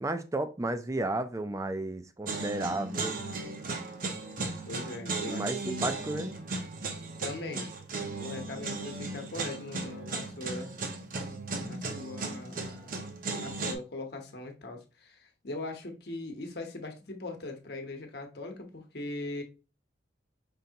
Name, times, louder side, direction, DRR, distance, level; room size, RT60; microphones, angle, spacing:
voice 1, 0.0-3.2 5.2-6.3, right 2 dB, 15° right, 0.4 m, -33 dB
sound 1, 2.3-13.7, right 3 dB, 50° right, 0.8 m, -36 dB
voice 2, 4.7-5.9 7.2-7.7 8.2-10.7 11.6-12.9 13.4-19.4, left 2 dB, 60° left, 1.0 m, -40 dB
5.3 x 3.3 x 2.8 m
head